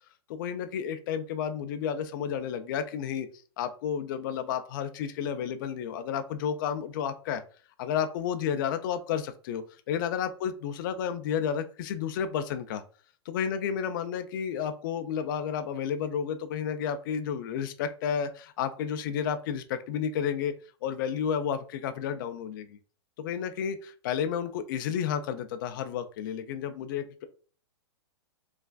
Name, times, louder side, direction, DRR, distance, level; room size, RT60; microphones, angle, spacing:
voice 1, 0.3-3.3 3.6-7.4 7.8-12.8 13.3-20.5 20.8-22.8 23.2-27.2, left 8 dB, 50° left, 9 dB, 0.4 m, -31 dB
3.3 x 2.4 x 2.3 m, 0.40 s
hypercardioid pair, 140°, 14 cm